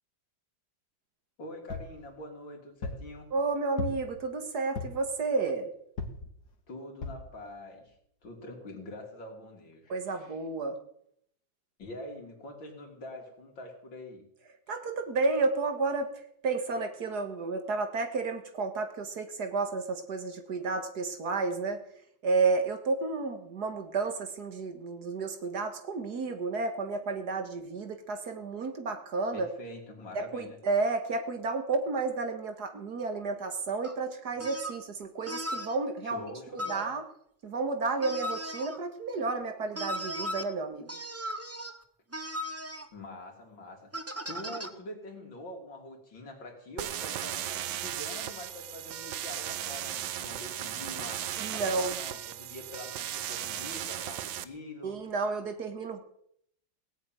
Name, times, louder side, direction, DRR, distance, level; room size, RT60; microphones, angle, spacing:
voice 1, 1.4-3.3 6.7-7.9 8.2-10.4 11.8-14.3 29.3-30.6 36.0-36.9 42.9-43.9 44.3-51.3 51.5-55.0 55.4-55.5, left 1 dB, 80° left, 2 dB, 3.7 m, -45 dB
sound 1, 1.7-2.0 2.8-3.1 3.8-4.2 4.8-5.1 6.0-6.3 7.0-7.3 7.9-8.0 8.2-8.3, left 4 dB, 60° left, 2.4 m, -36 dB
voice 2, 3.3-5.7 9.9-10.8 14.7-16.1 16.4-21.8 22.2-29.5 30.1-36.2 36.5-37.0 37.4-40.9 51.4-52.0 54.8-56.0, right 3 dB, 60° right, 6 dB, 2.1 m, -31 dB
sound 2, 33.8-33.9 34.4-34.8 35.2-35.8 36.6-36.9 38.0-38.8 39.7-40.4 40.9-41.8 42.1-42.9 43.9-44.7, equal, 20° right, 0.3 m, -37 dB
sound 3, 46.8-54.4, right 11 dB, 80° right, 1.5 m, -36 dB
18.0 x 7.0 x 9.1 m, 0.72 s
omnidirectional pair, 2.0 m